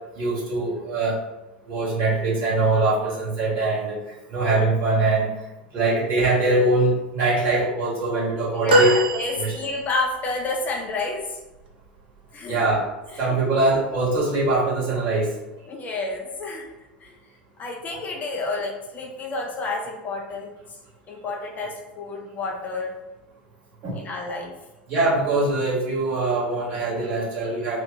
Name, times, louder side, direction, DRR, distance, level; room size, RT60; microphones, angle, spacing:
voice 1, 0.2-1.2 1.7-4.0 4.3-5.3 5.7-8.9 9.4-9.5 12.5-12.8 13.2-15.3 23.8-24.0 24.9-27.8, right 2 dB, 40° right, -6 dB, 1.4 m, -22 dB
voice 2, 8.5-11.4 12.3-12.7 13.1-13.4 15.7-16.7 17.0-17.1 17.6-20.8 21.1-22.9 23.9-24.5, left 3 dB, 30° left, 0 dB, 0.5 m, -30 dB
sound 1, 8.7-10.1 12.5-12.7 14.0-14.1, right 1 dB, 65° right, 0.6 m, -21 dB
2.7 x 2.3 x 3.8 m, 1.0 s
figure-of-eight pair, 80°, 6 cm